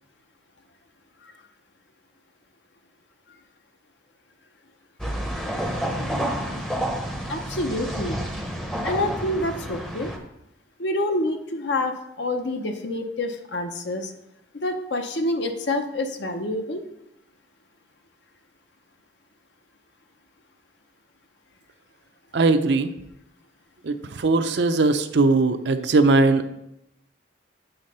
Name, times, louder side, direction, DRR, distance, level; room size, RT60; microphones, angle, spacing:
sound 1, 5.0-10.2, equal, ahead, 0.7 m, -29 dB
voice 1, 7.3-8.2 8.8-10.1 10.8-14.1 14.5-16.8, left 1 dB, 65° left, 6 dB, 0.7 m, -27 dB
voice 2, 22.3-22.9 23.8-26.5, right 3 dB, 65° right, 9 dB, 0.5 m, -20 dB
8.0 x 3.7 x 5.4 m, 0.84 s
head